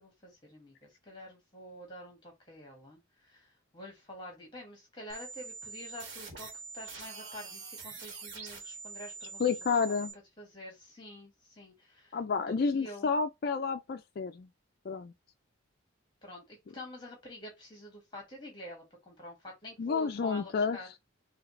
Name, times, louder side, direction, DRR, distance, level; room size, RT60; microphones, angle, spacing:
voice 1, 0.0-6.5 6.7-13.1 16.2-20.9, left 1 dB, 20° left, 2.0 m, -48 dB
sound 1, 5.1-10.1, right 4 dB, 60° right, 1.8 m, -45 dB
voice 2, 9.4-10.1 12.1-14.5 14.9-15.1 19.8-20.8, left 5 dB, 50° left, 0.3 m, -30 dB
5.0 x 2.9 x 3.2 m
head